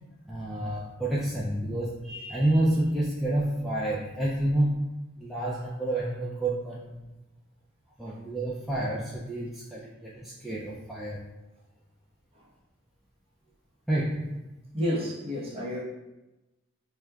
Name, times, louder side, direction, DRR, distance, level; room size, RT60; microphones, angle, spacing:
voice 1, 0.2-4.9 5.2-7.1 8.0-11.2 13.9-14.4, right 1 dB, ahead, -7 dB, 0.3 m, -29 dB
voice 2, 14.7-15.8, equal, 25° right, -5 dB, 0.9 m, -31 dB
6.0 x 2.2 x 2.3 m, 1.0 s
head